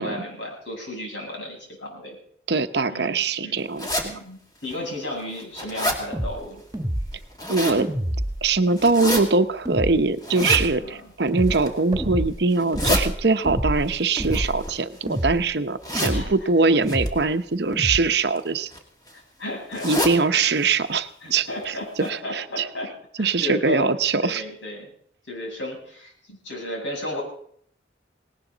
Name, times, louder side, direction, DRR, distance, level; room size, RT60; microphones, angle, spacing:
voice 1, 0.0-2.2 2.9-3.2 3.4-3.6 4.0-6.6 10.8-11.1 16.1-16.5 19.1-20.4 21.2-22.9 23.2-23.9 24.2-24.9 25.3-27.2, left 1 dB, 80° left, -1 dB, 7.9 m, -34 dB
voice 2, 2.5-3.9 7.5-7.9 8.4-18.7 19.8-21.7 22.1-22.7 23.2-24.4, right 4 dB, 60° right, 10 dB, 0.8 m, -22 dB
sound 1, 3.8-4.1 4.7-4.8 5.2-6.0 7.1-7.8 8.8-9.2 10.2-10.6 11.4-11.8 12.5-13.0 14.1-15.1 15.8-16.2 16.9-17.1 18.1-18.4 18.7-18.8 19.1-19.2 19.7-20.2 20.6-20.7 21.0-21.1 21.6-21.7 22.0-22.1, left 1 dB, 20° left, 2.4 m, -27 dB
sound 2, 6.1-6.3 6.7-7.2 7.8-8.5 9.7-10.0 10.4-10.7 11.3-11.6 11.9-12.3 12.7-13.2 13.4-13.9 14.2-14.6 15.1-15.4 15.9-16.3 16.8-17.2 17.7-18.0, equal, 20° right, 1.7 m, -27 dB
19.0 x 18.5 x 4.0 m, 0.64 s
head